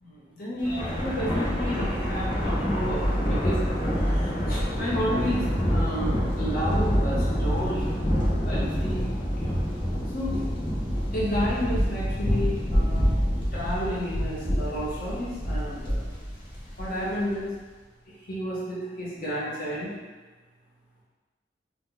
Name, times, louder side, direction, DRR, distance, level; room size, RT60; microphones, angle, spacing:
voice 1, 0.1-3.6 4.0-7.9 8.3-9.1 9.4-9.5 10.1-10.4 11.1-16.1 16.8-17.5 18.3-19.9, equal, 50° left, -8 dB, 0.8 m, -31 dB
Thunder, 0.6-17.2, equal, 25° left, 0.5 m, -27 dB
2.1 x 2.1 x 3.7 m, 1.3 s
head